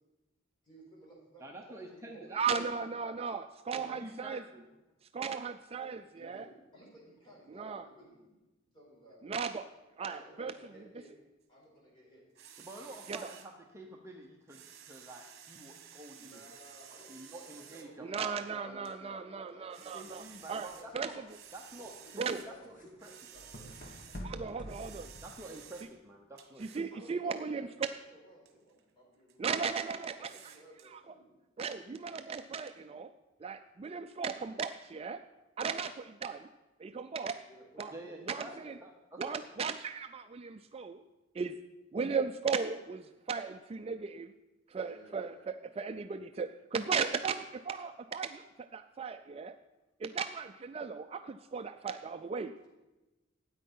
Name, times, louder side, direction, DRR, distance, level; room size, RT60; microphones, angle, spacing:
voice 1, 0.6-2.3 3.7-4.0 6.1-8.3 8.7-9.2 10.1-11.1 11.5-12.2 12.7-13.2 16.1-18.7 19.0-20.3 20.7-20.9 21.1-21.2 21.7-23.8 24.1-24.9 26.9-29.5 29.8-31.3 37.4-38.8 39.2-39.4 44.8-45.5, right 1 dB, 25° left, -4 dB, 5.2 m, -57 dB
voice 2, 1.4-2.7 4.0-4.8 12.6-16.5 17.1-19.1 19.9-21.2 21.5-23.1 25.2-26.8 37.9-39.5, right 1 dB, 15° right, 0 dB, 0.9 m, -49 dB
voice 3, 2.3-4.4 5.1-6.4 7.6-7.8 9.2-9.7 10.0-10.5 13.1-13.2 18.0-20.7 20.9-21.1 22.2-22.4 24.2-25.1 26.6-27.9 29.4-30.3 30.9-31.0 31.6-33.1 33.4-35.2 35.6-36.5 36.8-37.4 37.8-37.9 38.3-38.7 39.2-41.0 41.4-41.6 41.9-44.3 44.7-49.5 50.0-52.5, right 5 dB, 30° right, 8 dB, 0.4 m, -36 dB
sound 1, 12.3-13.5 14.2-17.9 18.8-19.0 19.5-22.5 22.9-25.9 26.4-26.8 27.8-27.9 28.5-28.8 29.3-29.4 30.2-30.9, right 8 dB, 55° right, 1.5 m, -53 dB
sound 2, 19.9-25.8, equal, 40° left, 1.7 m, -49 dB
13.0 x 9.1 x 5.5 m, 1.1 s
head